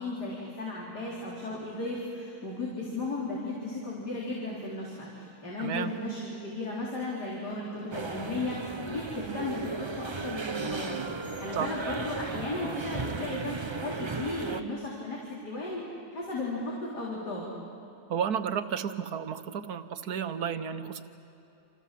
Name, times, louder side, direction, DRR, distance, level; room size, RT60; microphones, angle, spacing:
voice 1, 0.0-8.6 8.9-10.9 11.4-13.6 13.8-15.8 16.1-17.5, left 2 dB, 80° left, -4 dB, 4.4 m, -35 dB
voice 2, 5.6-5.9 11.5-11.7 18.1-21.0, right 8 dB, 70° right, 10 dB, 1.6 m, -32 dB
sound 1, 7.9-14.6, right 4 dB, 25° right, 0.6 m, -35 dB
28.5 x 26.5 x 7.6 m, 3.0 s
omnidirectional pair, 1.8 m